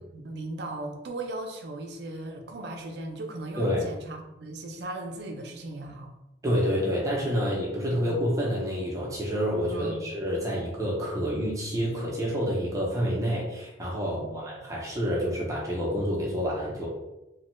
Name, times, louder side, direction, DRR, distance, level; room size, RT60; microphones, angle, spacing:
voice 1, 0.0-6.1 7.8-8.2 9.7-10.1 14.1-14.8, right 2 dB, 60° right, 3 dB, 0.4 m, -38 dB
voice 2, 6.4-16.9, equal, 15° right, -4 dB, 0.6 m, -28 dB
3.1 x 2.1 x 3.0 m, 0.96 s
head